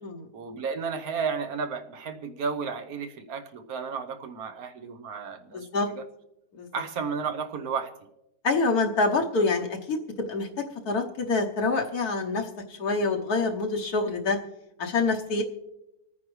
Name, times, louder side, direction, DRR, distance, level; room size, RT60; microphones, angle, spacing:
voice 1, 0.3-5.7 5.9-6.0 6.7-7.9, right 5 dB, 70° right, 7 dB, 1.4 m, -33 dB
voice 2, 5.5-5.9 6.6-6.7 8.4-10.0 10.3-10.5 10.8-14.4 14.8-15.4, left 3 dB, 70° left, 1 dB, 1.5 m, -26 dB
26.0 x 9.5 x 3.2 m, 0.92 s
omnidirectional pair, 1.7 m